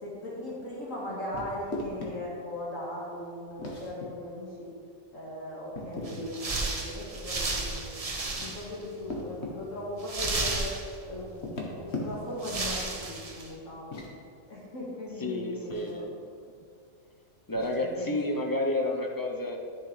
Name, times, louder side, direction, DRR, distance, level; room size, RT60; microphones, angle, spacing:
voice 1, 0.0-4.7 5.1-10.7 11.0-14.0 14.5-16.0 17.8-18.5, left 1 dB, 70° left, -6 dB, 2.2 m, -38 dB
sound 1, 1.3-2.1 3.6-4.1 5.7-6.3 8.2-9.6 11.3-12.4 13.7-14.1 15.7-16.0 17.5-17.8, left 2 dB, 55° left, 1.5 m, -38 dB
sound 2, 6.1-8.8 9.1-9.2 10.0-11.2 12.0-12.1 12.4-13.5, right 3 dB, 30° right, 0.8 m, -33 dB
voice 2, 15.2-16.2 17.5-19.6, left 1 dB, 20° left, 1 dB, 0.6 m, -30 dB
11.5 x 6.8 x 3.3 m, 2.3 s
omnidirectional pair, 1.4 m